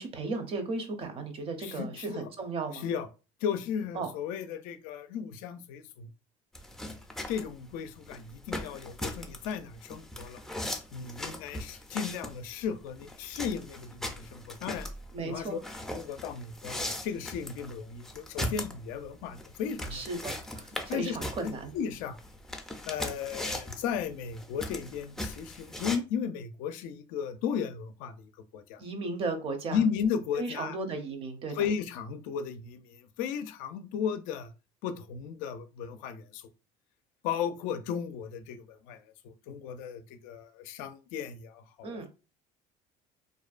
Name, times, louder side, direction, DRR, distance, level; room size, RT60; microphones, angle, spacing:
voice 1, 0.0-2.8 3.9-4.1 15.1-15.6 19.9-21.7 28.8-29.8 30.4-31.5 41.8-42.1, right 3 dB, 40° right, 0.6 m, -35 dB
voice 2, 1.6-2.2 2.7-3.1 3.4-6.1 7.3-10.4 10.9-14.9 15.2-15.6 15.9-20.0 20.9-21.2 21.4-22.2 22.9-28.8 29.7-30.8 31.5-34.5 34.8-36.5 37.2-42.1, left 7 dB, 75° left, 0.4 m, -35 dB
sound 1, 6.5-26.0, left 1 dB, 5° left, 0.4 m, -39 dB
2.5 x 2.1 x 2.4 m
cardioid pair, 120°, 14 cm